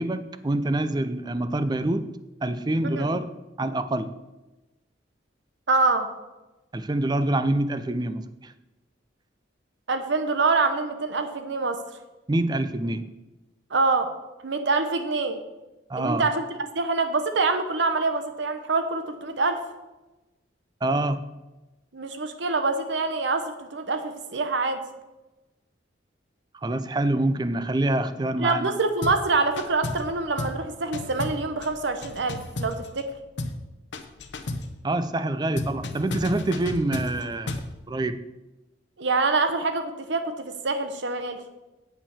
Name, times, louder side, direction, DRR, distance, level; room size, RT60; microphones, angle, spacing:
voice 1, 0.0-2.1 2.4-4.1 6.7-8.5 12.3-13.1 15.9-16.3 20.8-21.2 26.6-28.7 34.8-38.2, right 1 dB, 20° right, 12 dB, 0.4 m, -26 dB
voice 2, 5.7-6.1 9.9-11.8 13.7-14.1 14.4-15.4 15.9-16.5 16.7-19.6 21.9-24.8 28.4-33.1 39.0-41.4, right 3 dB, 65° right, 7 dB, 0.8 m, -25 dB
sound 1, 29.0-29.3 29.6-30.1 30.4-30.6 30.9-33.1 33.4-33.6 33.9-34.7 35.6-37.7, left 2 dB, 70° left, 0.8 m, -33 dB
8.6 x 5.7 x 7.0 m, 1.1 s
head